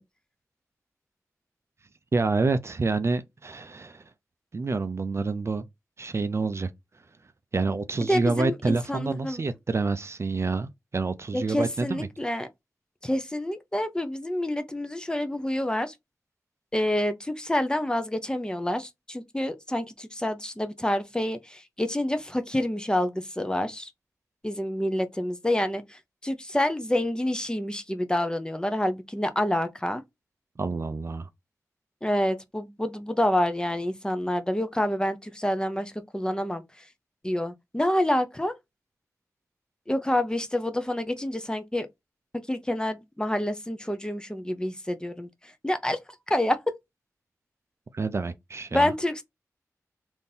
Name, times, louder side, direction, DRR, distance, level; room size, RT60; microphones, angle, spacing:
voice 1, 2.1-4.0 4.5-5.7 6.0-6.7 7.5-12.1 30.6-31.3 47.9-48.9, right 3 dB, 50° right, 0.4 m, -28 dB
voice 2, 8.1-9.4 11.3-12.5 13.0-15.9 16.7-23.9 24.4-30.0 32.0-36.9 37.2-38.5 39.9-41.9 42.5-46.0 46.3-46.8 48.7-49.2, left 1 dB, 15° left, 0.6 m, -28 dB
3.5 x 2.6 x 2.7 m
cardioid pair, 55°, 6 cm